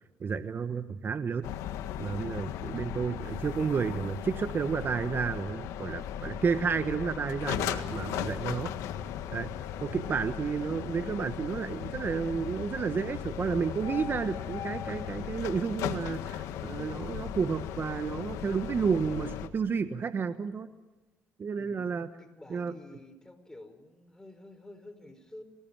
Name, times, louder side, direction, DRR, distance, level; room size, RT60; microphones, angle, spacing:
voice 1, 0.2-1.5 2.0-8.7 9.3-9.5 9.8-20.7 21.4-22.1 22.5-22.7, right 5 dB, 40° right, 10 dB, 1.3 m, -31 dB
sound 1, 1.4-19.5, left 10 dB, 80° left, 1.6 m, -37 dB
voice 2, 21.5-21.9 22.2-25.4, left 1 dB, 10° left, 8 dB, 4.7 m, -50 dB
26.5 x 19.0 x 7.5 m, 1.1 s
supercardioid pair, 80°, 5 cm